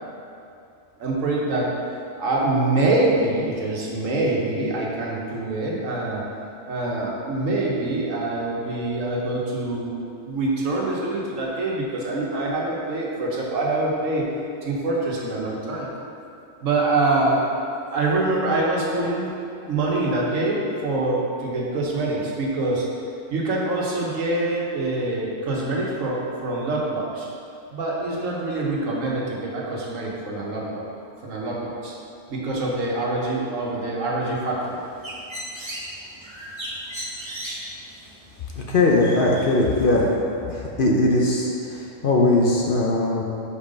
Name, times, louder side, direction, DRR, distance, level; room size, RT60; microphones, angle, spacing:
voice 1, 1.0-1.7 2.2-6.2 6.7-14.3 14.6-15.9 16.6-17.5 17.9-19.3 19.7-22.8 23.3-27.3 27.7-30.8 31.2-31.9 32.3-34.8, right 2 dB, 85° right, -3 dB, 1.4 m, -25 dB
Bird, 34.6-40.0, right 1 dB, 25° right, 0.7 m, -37 dB
voice 2, 38.7-40.1 40.5-43.2, left 2 dB, 50° left, -2 dB, 0.7 m, -20 dB
5.5 x 4.5 x 5.1 m, 2.7 s
omnidirectional pair, 1.3 m